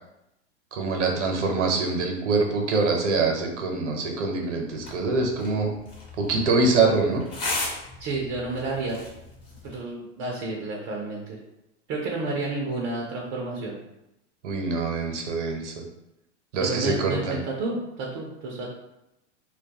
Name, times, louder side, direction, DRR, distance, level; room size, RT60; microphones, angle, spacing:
voice 1, 0.7-5.7 6.2-7.2 14.4-15.7 16.5-17.4, right 3 dB, 80° right, 1 dB, 0.7 m, -24 dB
sound 1, 4.7-9.7, left 2 dB, 45° left, 1.0 m, -36 dB
voice 2, 8.0-9.0 9.6-11.4 11.9-13.8 16.6-18.7, right 3 dB, 35° right, -2 dB, 0.5 m, -30 dB
2.2 x 2.2 x 2.8 m, 0.88 s
hypercardioid pair, 105°, 36 cm